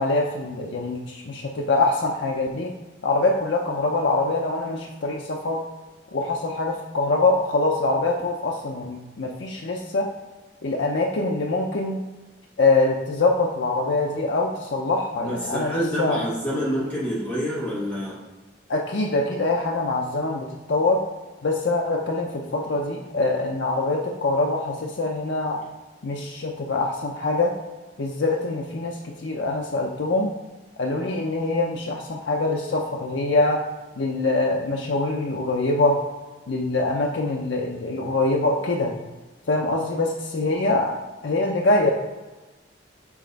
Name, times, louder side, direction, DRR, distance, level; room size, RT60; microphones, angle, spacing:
voice 1, 0.0-2.7 3.0-5.6 6.1-10.1 10.6-12.0 12.6-16.2 18.7-21.0 21.4-25.6 26.0-27.5 28.0-30.3 30.8-33.6 34.0-36.0 36.5-38.9 39.5-41.9, left 2 dB, 80° left, 0 dB, 0.6 m, -24 dB
voice 2, 15.2-18.2, equal, 10° left, -8 dB, 1.3 m, -27 dB
7.1 x 3.3 x 4.0 m, 1.2 s
head